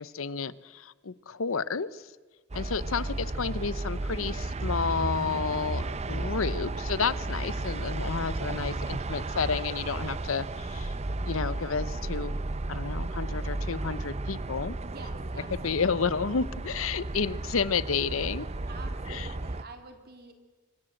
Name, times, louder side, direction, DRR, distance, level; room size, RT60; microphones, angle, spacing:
voice 1, 0.0-2.1 2.5-10.9 11.2-12.3 12.7-14.8 15.5-18.5 19.1-19.3, left 5 dB, 75° left, 17 dB, 0.8 m, -31 dB
sound 1, 2.5-19.6, right 2 dB, 30° right, 0.7 m, -33 dB
voice 2, 14.8-16.0 18.7-20.3, right 3 dB, 50° right, 6 dB, 3.1 m, -47 dB
26.0 x 23.0 x 7.8 m, 1.3 s
head